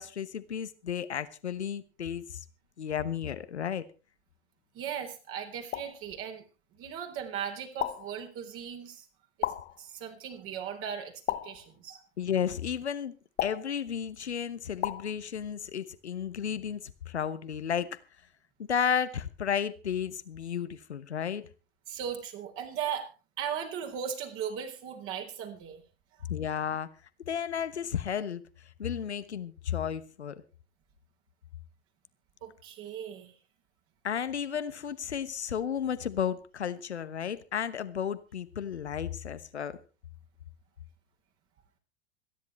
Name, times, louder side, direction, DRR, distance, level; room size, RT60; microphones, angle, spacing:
voice 1, 0.0-2.4 2.8-3.8 12.2-13.1 13.4-17.9 18.6-21.5 26.3-26.9 27.3-28.4 28.8-30.3 34.0-39.8, left 8 dB, 80° left, 1.2 m, -33 dB
voice 2, 4.7-6.4 6.7-9.0 9.4-11.1 11.4-12.0 21.9-23.1 23.4-25.8 32.4-33.3, right 8 dB, 40° right, 3.7 m, -37 dB
sound 1, 5.7-6.0 7.8-8.2 9.4-9.8 11.3-11.7 13.4-13.8 14.8-15.1, left 13 dB, 30° left, 0.9 m, -33 dB
26.5 x 10.5 x 3.2 m
figure-of-eight pair, 90°, 33 cm